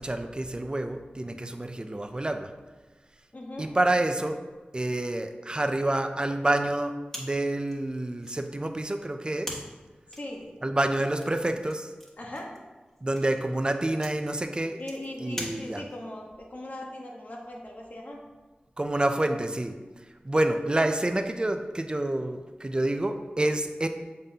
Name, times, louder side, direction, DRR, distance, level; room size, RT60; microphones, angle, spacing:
voice 1, 0.0-2.5 3.6-4.4 4.7-9.6 10.6-11.9 13.0-14.8 15.2-15.8 18.8-19.7 20.2-23.9, right 1 dB, 30° right, 7 dB, 0.5 m, -28 dB
voice 2, 3.3-3.8 10.2-10.5 12.2-12.5 14.8-18.2, left 1 dB, 55° left, -1 dB, 1.2 m, -39 dB
sound 1, 7.1-16.1, equal, 15° left, 1.4 m, -44 dB
7.1 x 5.3 x 2.8 m, 1.3 s
wide cardioid pair, 55°, 3 cm